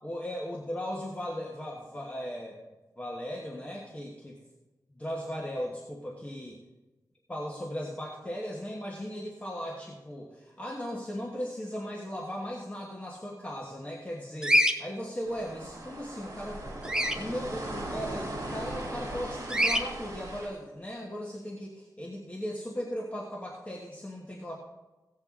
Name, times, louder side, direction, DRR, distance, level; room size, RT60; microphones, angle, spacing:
voice 1, 0.0-2.6 3.0-4.4 4.9-6.6 7.3-16.6 17.1-24.5, equal, 20° left, -2 dB, 1.2 m, -37 dB
Bird vocalization bird call bird song, 14.4-14.7 16.8-17.2 19.5-19.8, equal, 10° right, 0.7 m, -24 dB
sound 1, 15.3-20.5, right 1 dB, 50° right, 2.9 m, -38 dB
16.5 x 7.7 x 3.7 m, 1.1 s
wide cardioid pair, 130°, 7 cm